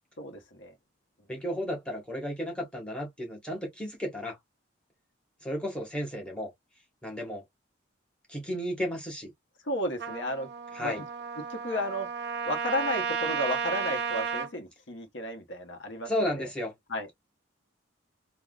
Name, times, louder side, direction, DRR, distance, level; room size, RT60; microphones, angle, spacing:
voice 1, 0.2-0.7 9.6-10.5 10.8-11.0 11.5-12.1 12.4-16.1 16.4-16.5 16.9-17.1, left 1 dB, 70° left, 0.9 m, -33 dB
voice 2, 1.3-4.4 5.4-6.5 7.0-7.4 8.3-9.3 10.7-11.0 16.1-16.7, equal, 5° left, 1.3 m, -33 dB
Trumpet, 10.0-14.5, right 6 dB, 55° right, 0.5 m, -33 dB
3.5 x 2.3 x 2.4 m
head